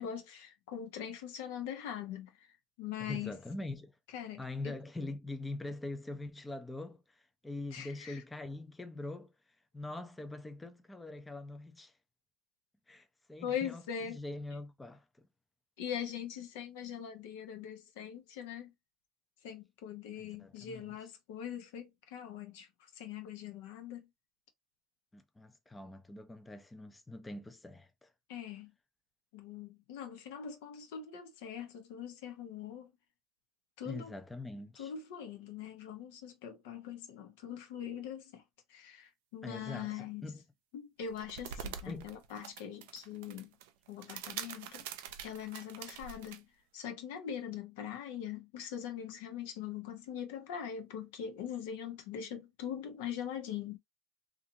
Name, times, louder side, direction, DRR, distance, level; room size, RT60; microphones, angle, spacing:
voice 1, 0.0-2.5 2.8-3.3 4.1-4.8 7.7-8.2 13.4-14.2 15.8-18.7 19.4-22.7 23.0-24.1 28.3-28.7 29.3-32.9 33.8-34.1 34.8-38.4 38.7-40.3 40.7-43.5 43.9-44.8 45.2-46.5 46.7-53.8, left 9 dB, 80° left, 0.9 m, -42 dB
voice 2, 3.0-4.0 4.4-9.3 9.7-11.9 12.9-15.1 20.2-21.0 25.1-28.1 33.8-34.9 39.4-40.4 41.9-42.1, left 2 dB, 10° left, 0.5 m, -43 dB
sound 1, 41.0-46.4, right 8 dB, 80° right, 0.5 m, -45 dB
2.6 x 2.4 x 2.8 m
supercardioid pair, 95°, 0 cm